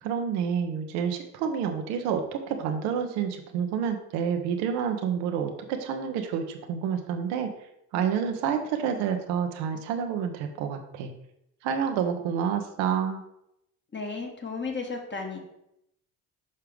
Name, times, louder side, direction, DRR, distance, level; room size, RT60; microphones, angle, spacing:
voice 1, 0.0-7.5 7.9-11.1 11.6-13.2, right 7 dB, 70° right, 5 dB, 1.0 m, -29 dB
voice 2, 13.9-15.4, left 4 dB, 25° left, 2 dB, 1.5 m, -34 dB
6.7 x 5.6 x 3.4 m, 0.79 s
hypercardioid pair, 55°, 44 cm